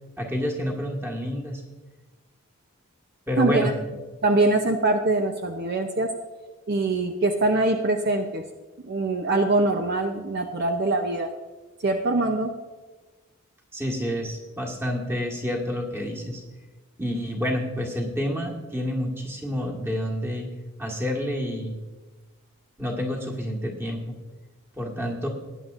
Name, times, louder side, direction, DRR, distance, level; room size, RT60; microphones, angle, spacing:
voice 1, 0.2-1.6 3.3-3.7 13.7-16.4 17.0-20.5 20.8-21.7 22.8-24.0 24.7-25.3, equal, 10° right, -1 dB, 1.6 m, -28 dB
voice 2, 3.4-3.7 4.2-6.1 6.7-8.4 8.8-11.3 11.8-12.5, right 2 dB, 45° right, 4 dB, 0.6 m, -23 dB
18.0 x 9.7 x 2.5 m, 1.3 s
head